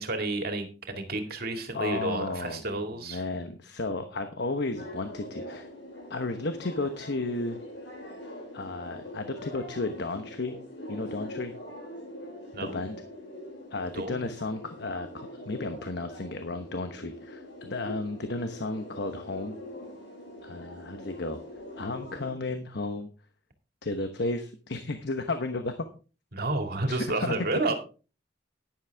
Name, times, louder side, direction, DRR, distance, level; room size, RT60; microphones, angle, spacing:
voice 1, 0.0-3.2 12.5-12.8 13.9-14.3 26.3-27.7, right 2 dB, 55° right, 5 dB, 2.3 m, -31 dB
voice 2, 1.7-5.7 6.1-7.6 8.5-10.6 10.9-11.5 12.6-13.0 13.7-19.6 20.4-21.4 21.8-23.1 23.8-25.9 26.9-27.4, left 2 dB, 65° left, 8 dB, 1.1 m, -33 dB
sound 1, 4.7-22.3, left 1 dB, 80° left, 5.8 m, -43 dB
11.5 x 10.5 x 3.5 m, 0.35 s
head